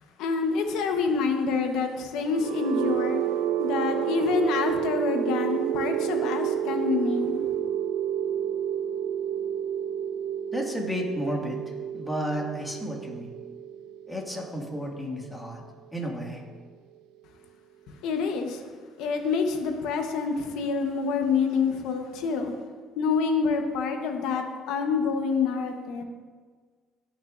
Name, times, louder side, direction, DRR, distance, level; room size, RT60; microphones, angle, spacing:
voice 1, 0.0-3.3 3.6-7.4 17.9-18.6 19.0-22.5 23.0-26.0, left 5 dB, 80° left, 5 dB, 1.1 m, -27 dB
sound 1, 2.2-16.1, right 10 dB, 85° right, 0.4 m, -30 dB
voice 2, 10.5-13.4 14.1-15.6 15.9-16.4, equal, 10° left, -1 dB, 2.0 m, -32 dB
17.0 x 6.1 x 2.6 m, 1.5 s
supercardioid pair, 80°, 0 cm